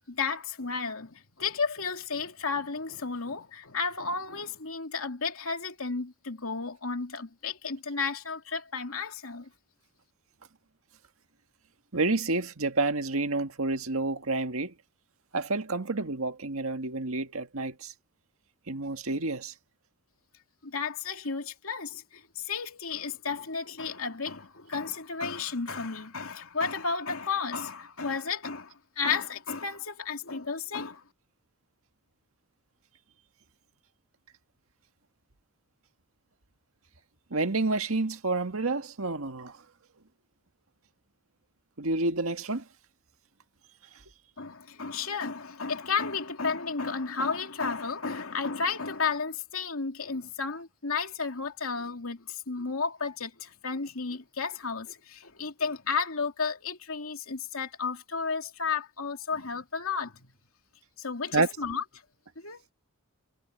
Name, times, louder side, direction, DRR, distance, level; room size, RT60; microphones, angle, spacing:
voice 1, 0.1-9.5 20.6-31.1 44.4-60.3 61.0-61.8 62.4-62.6, left 5 dB, 80° left, 2.8 m, -33 dB
voice 2, 11.9-14.7 15.3-17.9 18.7-19.5 37.3-39.5 41.8-42.6 61.3-61.5, right 3 dB, 80° right, 1.8 m, -29 dB
head